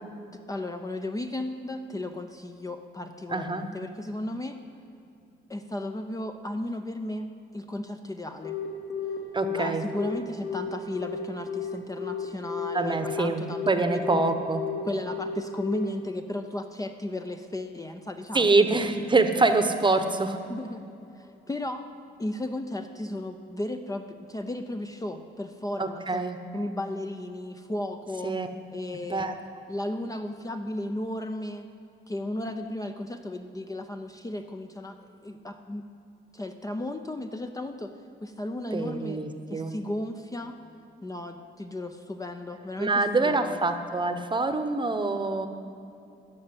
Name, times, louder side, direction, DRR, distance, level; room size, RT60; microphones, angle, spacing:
voice 1, 0.3-4.6 5.5-8.6 9.5-14.3 14.8-18.6 20.5-20.9 21.2-21.8 22.2-26.2 26.5-28.3 28.7-29.3 29.7-31.7 32.1-35.9 36.3-37.9 38.2-39.2 39.5-40.6 41.0-43.6, left 1 dB, 15° left, 6 dB, 0.7 m, -35 dB
voice 2, 3.3-3.7 9.3-9.8 12.7-14.6 18.3-20.4 25.8-26.4 28.2-28.5 29.1-29.3 38.7-39.7 42.8-45.5, right 3 dB, 25° right, 8 dB, 1.0 m, -25 dB
Telephone, 8.4-15.8, left 8 dB, 65° left, 3.1 m, -33 dB
13.5 x 6.5 x 9.7 m, 2.7 s
cardioid pair, 90°, 20 cm